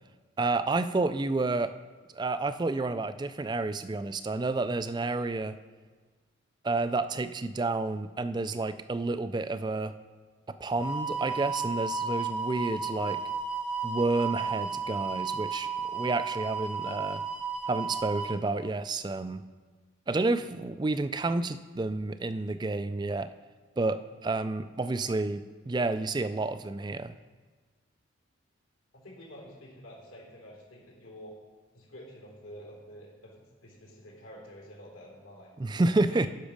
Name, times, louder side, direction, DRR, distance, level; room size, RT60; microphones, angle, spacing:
voice 1, 0.4-1.7 2.1-5.6 6.6-9.9 10.5-13.2 13.8-17.2 17.7-19.4 20.1-23.3 23.8-27.1 35.6-36.3, right 3 dB, 20° right, 12 dB, 0.3 m, -30 dB
sound 1, 10.7-18.3, right 5 dB, 5° right, 0.8 m, -33 dB
voice 2, 28.9-31.3 31.7-35.5 35.9-36.3, equal, 80° left, -3 dB, 3.6 m, -48 dB
12.0 x 6.0 x 5.1 m, 1.4 s
head